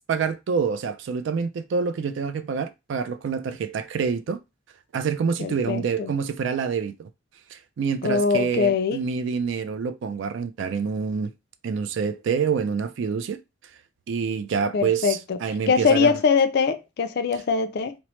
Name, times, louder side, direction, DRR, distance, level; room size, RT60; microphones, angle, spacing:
voice 1, 0.0-4.4 4.9-7.1 7.5-11.3 11.6-13.4 14.1-16.1, right 6 dB, 65° right, 0.3 m, -27 dB
voice 2, 5.4-6.1 8.0-9.0 14.7-15.4 15.7-18.0, left 5 dB, 55° left, 0.4 m, -22 dB
2.9 x 2.0 x 3.1 m
head